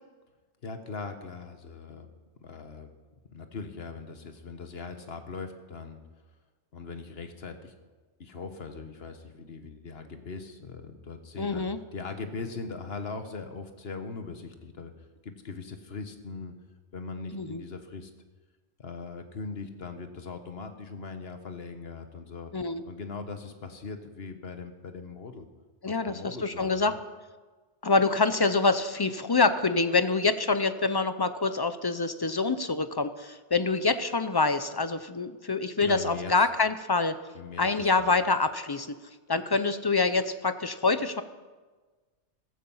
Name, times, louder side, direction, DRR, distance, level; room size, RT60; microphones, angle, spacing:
voice 1, 0.6-2.1 2.4-2.9 3.3-6.0 6.7-7.7 8.2-14.9 15.2-16.6 16.9-18.1 18.8-22.5 22.8-25.5 25.8-27.0 35.8-36.5 37.3-38.1, left 4 dB, 60° left, 7 dB, 1.5 m, -40 dB
voice 2, 11.4-11.8 17.3-17.6 22.5-22.8 25.8-26.9 27.8-37.1 37.6-38.9 39.3-41.2, left 3 dB, 25° left, 11 dB, 0.6 m, -26 dB
15.0 x 14.5 x 5.6 m, 1.3 s
omnidirectional pair, 1.2 m